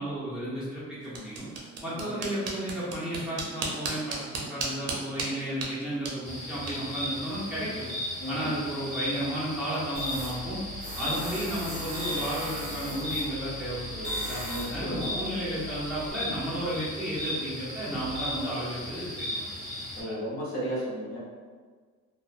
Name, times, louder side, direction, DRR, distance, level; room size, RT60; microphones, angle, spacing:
voice 1, 0.0-1.4 1.8-7.9 8.3-10.6 11.0-19.4 19.9-20.2, right 1 dB, 5° right, -11 dB, 0.6 m, -33 dB
sound 1, 1.0-8.0, right 3 dB, 55° right, 0.5 m, -38 dB
voice 2, 1.8-2.2 8.2-8.5 11.0-11.2 14.4-15.7 19.9-21.2, equal, 45° left, -6 dB, 0.8 m, -35 dB
Night Ambience, 6.2-20.0, left 1 dB, 20° left, 1.1 m, -36 dB
Tools, 10.0-16.1, left 1 dB, 35° right, 0.9 m, -40 dB
2.7 x 2.2 x 2.4 m, 1.5 s
cardioid pair, 170°, 30 cm